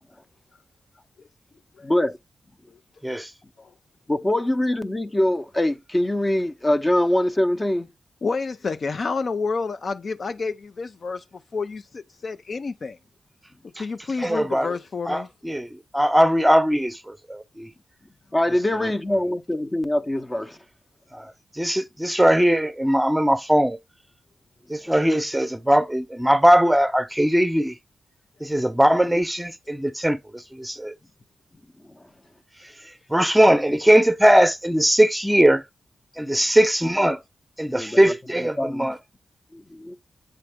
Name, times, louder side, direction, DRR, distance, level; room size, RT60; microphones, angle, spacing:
voice 1, 1.8-2.2 4.1-7.9 18.3-20.6 37.7-38.1 38.6-38.9 39.5-40.0, left 1 dB, 25° left, 0.7 m, -23 dB
voice 2, 8.2-13.0 13.8-15.3, left 4 dB, 60° left, 0.4 m, -29 dB
voice 3, 14.2-14.7 15.1-17.7 18.8-18.9 21.1-23.8 24.7-27.8 28.4-30.9 32.6-35.6 36.2-37.2 37.6-39.0, equal, 5° right, 0.7 m, -20 dB
7.8 x 3.5 x 3.5 m
cardioid pair, 55°, 0 cm